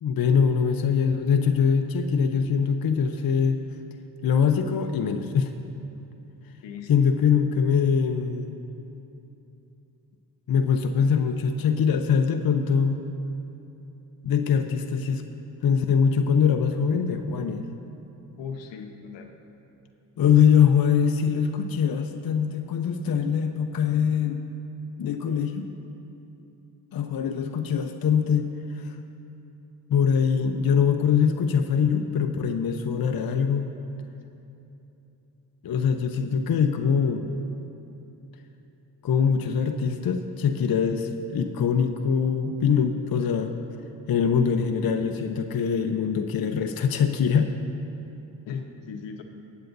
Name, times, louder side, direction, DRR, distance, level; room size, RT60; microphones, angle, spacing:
voice 1, 0.0-3.6 4.2-5.5 6.9-8.6 10.5-13.0 14.2-15.2 15.6-17.7 20.2-24.4 25.0-25.7 26.9-28.5 28.8-28.9 29.9-33.7 35.6-37.3 39.0-43.6 44.1-47.5, left 7 dB, 55° left, 6 dB, 0.8 m, -23 dB
voice 2, 18.4-19.3 48.5-49.2, left 6 dB, 80° left, 5 dB, 1.0 m, -37 dB
23.0 x 8.1 x 2.6 m, 2.9 s
supercardioid pair, 55°, 44 cm